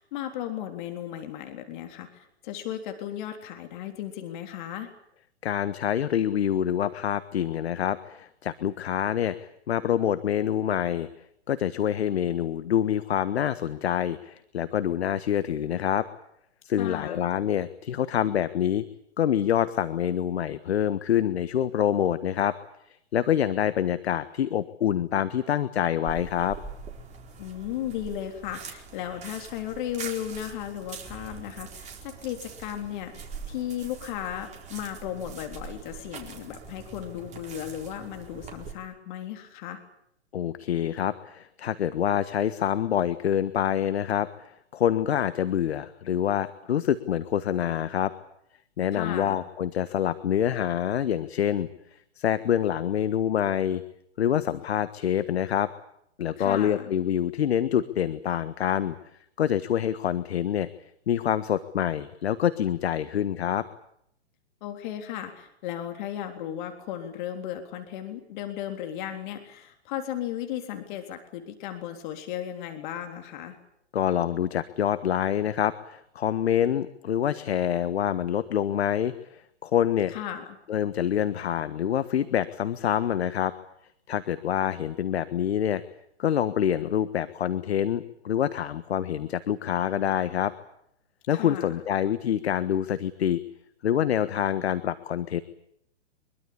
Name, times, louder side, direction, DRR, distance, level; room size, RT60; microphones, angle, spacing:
voice 1, 0.0-4.9 16.8-17.2 27.4-39.8 48.9-49.4 56.4-56.9 64.6-73.6 80.1-80.6 91.3-91.7, left 11 dB, 45° left, 5 dB, 3.6 m, -35 dB
voice 2, 5.4-11.1 11.5-16.1 16.6-18.9 19.2-22.5 23.1-26.6 40.3-44.3 44.7-48.1 48.8-51.7 52.2-53.8 54.2-55.7 56.2-59.0 59.4-60.7 61.1-63.6 73.9-80.1 80.7-83.5 84.1-85.8 86.2-90.5 91.3-93.4 93.8-95.4, left 10 dB, 65° left, 13 dB, 1.5 m, -26 dB
sound 1, 26.1-38.7, right 5 dB, 20° right, 4.2 m, -43 dB
24.0 x 23.0 x 8.7 m, 0.73 s
hypercardioid pair, 125°, 35 cm